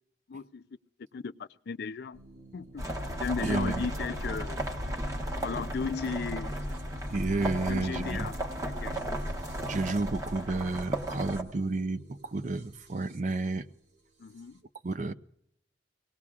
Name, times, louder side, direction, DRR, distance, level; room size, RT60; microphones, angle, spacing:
voice 1, 0.3-0.6 1.1-2.2 2.5-2.8 3.2-4.6 5.4-6.5 7.7-8.3 8.6-9.0 14.2-14.6, left 5 dB, 60° left, 0.4 m, -35 dB
sound 1, 2.1-14.6, equal, 90° right, 2.1 m, -52 dB
sound 2, 2.8-11.4, right 1 dB, 20° right, 1.2 m, -34 dB
voice 2, 3.4-3.9 7.1-8.3 9.7-13.7 14.8-15.1, right 3 dB, 45° right, 0.5 m, -31 dB
24.5 x 18.5 x 2.4 m
head